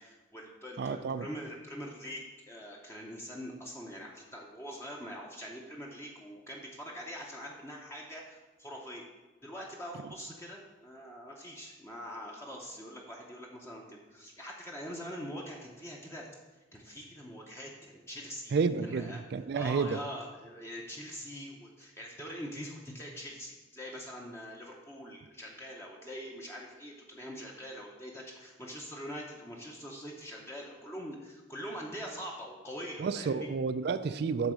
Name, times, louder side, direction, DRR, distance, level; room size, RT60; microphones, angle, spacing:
voice 1, 0.0-9.0 9.4-16.3 16.7-18.5 18.8-19.2 19.5-33.5, equal, 15° left, -2 dB, 0.7 m, -43 dB
voice 2, 0.8-1.3 18.5-20.0 33.0-34.5, right 5 dB, 55° right, 12 dB, 0.3 m, -30 dB
8.0 x 3.9 x 6.3 m, 1.2 s
head